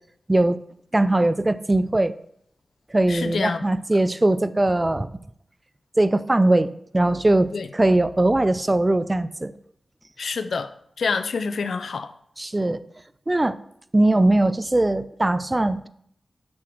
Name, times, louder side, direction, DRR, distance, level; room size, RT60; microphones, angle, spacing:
voice 1, 0.3-0.6 0.9-2.1 2.9-5.1 6.0-9.5 12.4-12.8 13.3-13.6 13.9-15.9, right 2 dB, 25° right, 0.4 m, -20 dB
voice 2, 3.1-3.6 7.5-7.7 10.2-10.7 11.0-12.1, left 5 dB, 85° left, 0.4 m, -27 dB
6.1 x 6.1 x 4.5 m
cardioid pair, 55°, 0 cm